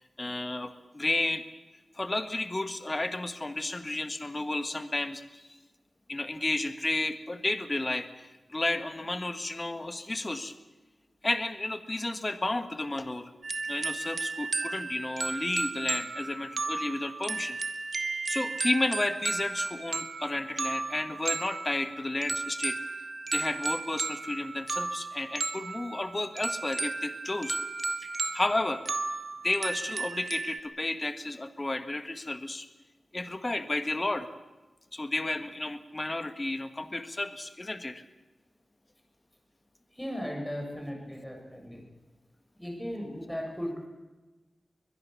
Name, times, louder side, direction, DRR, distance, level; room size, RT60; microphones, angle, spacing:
voice 1, 0.0-1.4 1.9-5.5 6.1-10.5 11.2-13.3 13.7-17.6 18.3-22.8 23.3-27.6 28.0-28.8 29.4-32.7 33.1-34.3 34.9-38.0, left 2 dB, 25° left, 9 dB, 1.5 m, -32 dB
sound 1, 13.4-30.6, right 3 dB, 50° right, 1.7 m, -34 dB
voice 2, 40.0-41.8 42.6-43.9, equal, 5° left, 1 dB, 7.7 m, -36 dB
22.5 x 21.5 x 7.1 m, 1.2 s
wide cardioid pair, 95°, 0 cm